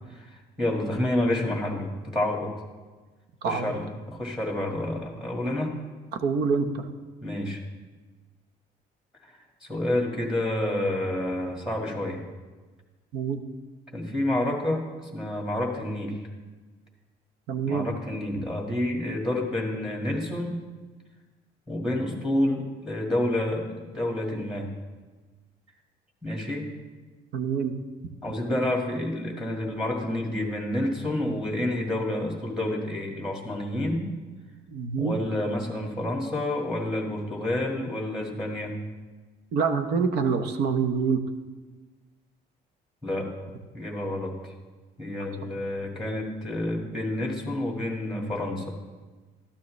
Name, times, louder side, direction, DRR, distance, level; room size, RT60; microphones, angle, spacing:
voice 1, 0.1-2.5 3.4-5.7 7.2-7.6 9.2-9.3 9.6-12.2 13.9-16.3 17.6-20.6 21.7-24.7 26.2-26.7 28.2-34.2 35.0-38.7 43.0-43.3 43.7-44.5 45.0-48.7, left 1 dB, 5° right, 0 dB, 1.7 m, -29 dB
voice 2, 3.4-3.8 6.2-6.8 13.1-13.4 17.5-17.9 27.3-27.7 34.7-35.2 39.5-41.2, right 5 dB, 75° right, 8 dB, 0.9 m, -26 dB
12.5 x 9.4 x 3.2 m, 1.3 s
cardioid pair, 110°, 17 cm